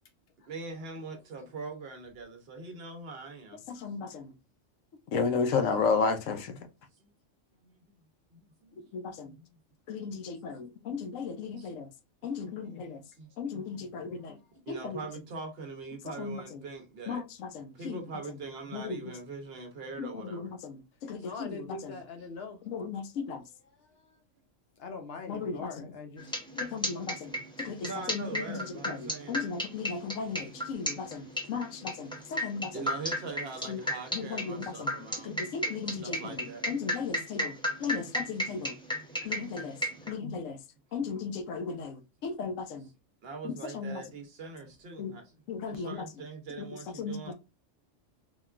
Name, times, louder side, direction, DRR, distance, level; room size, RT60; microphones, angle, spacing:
voice 1, 0.5-3.6 7.0-7.1 7.6-7.9 8.3-9.6 10.4-11.0 11.6-11.7 12.4-14.1 14.6-17.2 17.7-20.5 21.2-21.3 22.2-22.3 27.8-29.4 31.0-31.1 31.4-31.5 32.4-35.4 35.9-36.7 40.0-40.1 43.2-45.4 45.7-47.3, right 4 dB, 60° right, 0.9 m, -43 dB
voice 2, 3.7-4.3 5.1-6.6 8.9-9.3 9.9-11.9 12.2-13.0 13.4-14.4 14.7-15.0 16.2-16.6 17.1-18.0 18.7-19.0 20.0-22.0 22.6-23.4 25.3-25.8 26.5-32.8 33.7-33.8 34.1-34.9 35.2-38.7 39.2-39.8 40.1-40.6 40.9-42.9 43.4-44.0 45.0-45.1 45.5-46.1 46.6-46.7 47.0-47.3, left 5 dB, 85° left, 1.0 m, -35 dB
voice 3, 21.2-22.6 24.8-26.3, left 4 dB, 60° left, 0.8 m, -42 dB
sound 1, 26.2-40.1, equal, 5° left, 0.5 m, -33 dB
3.6 x 2.3 x 2.3 m
omnidirectional pair, 1.3 m